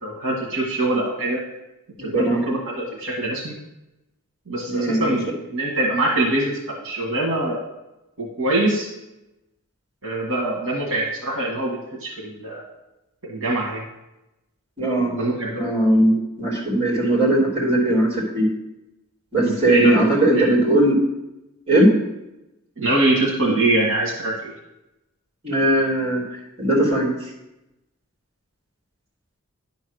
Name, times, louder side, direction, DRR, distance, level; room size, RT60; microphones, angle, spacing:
voice 1, 0.0-1.4 2.0-3.5 4.5-5.2 5.5-6.5 6.8-7.6 8.2-8.9 10.0-12.6 13.2-13.8 15.1-15.6 19.4-20.5 22.8-24.5, right 2 dB, 65° right, -2 dB, 1.7 m, -23 dB
voice 2, 2.0-2.5 4.7-5.1 14.8-15.1 15.5-18.5 19.3-20.9 21.7-21.9 25.4-26.2 26.6-27.1, right 1 dB, 25° right, -3 dB, 3.0 m, -19 dB
10.5 x 3.9 x 6.4 m, 0.93 s
head